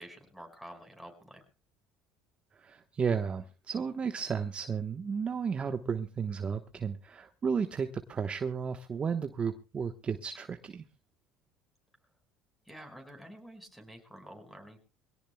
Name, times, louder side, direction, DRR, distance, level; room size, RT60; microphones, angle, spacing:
voice 1, 0.0-1.4 12.6-14.8, equal, ahead, 6 dB, 5.1 m, -49 dB
voice 2, 2.5-10.8, right 6 dB, 30° right, 7 dB, 1.1 m, -33 dB
24.0 x 17.0 x 2.2 m, 0.32 s
supercardioid pair, 90°, 4 cm